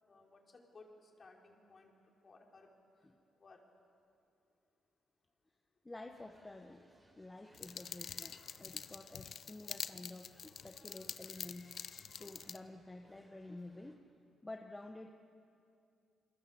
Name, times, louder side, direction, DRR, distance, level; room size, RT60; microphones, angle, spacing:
voice 1, 0.1-0.4 0.7-1.9 2.2-2.7 3.4-3.6, left 3 dB, 40° left, 0 dB, 4.9 m, -59 dB
voice 2, 5.8-6.9 7.1-11.8 12.2-14.0 14.4-15.1, left 2 dB, 15° left, 3 dB, 1.5 m, -50 dB
sound 1, 6.1-13.9, right 1 dB, 15° right, 5.9 m, -68 dB
sound 2, 7.5-12.6, left 7 dB, 60° left, 0.8 m, -46 dB
Screaming, 7.8-8.7 11.1-12.5, left 4 dB, 85° left, 6.9 m, -67 dB
29.0 x 22.0 x 8.1 m, 2.6 s
cardioid pair, 80°, 0 cm